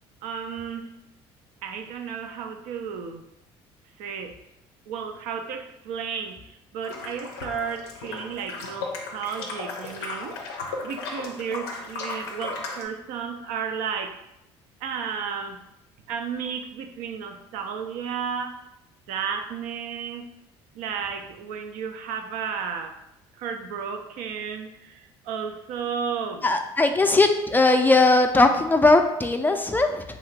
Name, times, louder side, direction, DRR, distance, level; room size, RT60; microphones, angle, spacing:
voice 1, 0.2-0.9 1.6-3.3 4.0-4.4 4.9-10.4 10.8-14.2 14.8-15.6 16.1-18.6 19.1-20.3 20.7-23.0 23.3-26.5, right 7 dB, 70° right, 6 dB, 0.4 m, -33 dB
sound 1, 6.8-12.8, left 3 dB, 90° left, 0.4 m, -35 dB
voice 2, 26.4-30.0, left 2 dB, 15° left, 6 dB, 0.3 m, -19 dB
2.7 x 2.4 x 3.2 m, 0.84 s
hypercardioid pair, 70°, 13 cm